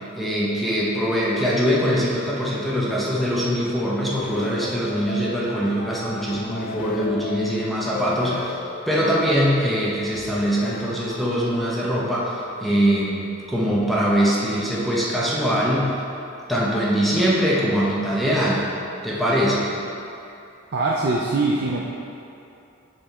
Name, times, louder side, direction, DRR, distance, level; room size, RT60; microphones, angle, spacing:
voice 1, 0.2-16.0 16.5-18.7 19.0-19.7, equal, ahead, -7 dB, 0.9 m, -22 dB
sound 1, 4.1-11.8, left 3 dB, 45° left, 0.4 m, -36 dB
voice 2, 20.7-21.9, right 3 dB, 55° right, -3 dB, 0.5 m, -22 dB
5.8 x 5.1 x 4.2 m, 2.8 s
head